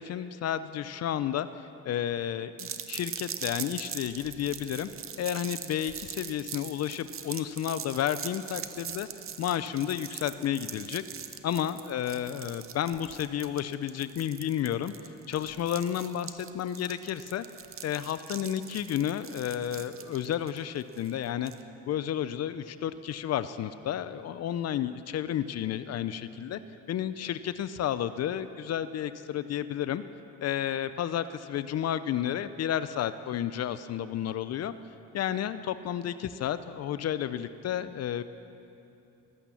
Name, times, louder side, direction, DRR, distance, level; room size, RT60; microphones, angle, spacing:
voice 1, 0.0-1.5 1.8-4.9 5.2-9.1 9.4-11.0 11.4-14.9 15.3-17.5 17.8-21.5 21.9-26.6 26.9-30.0 30.4-34.7 35.1-38.2, left 10 dB, 55° left, 13 dB, 0.5 m, -31 dB
sound 1, 2.6-21.6, right 8 dB, 45° right, 0.7 m, -42 dB
13.5 x 8.6 x 7.0 m, 2.7 s
cardioid pair, 90°, 30 cm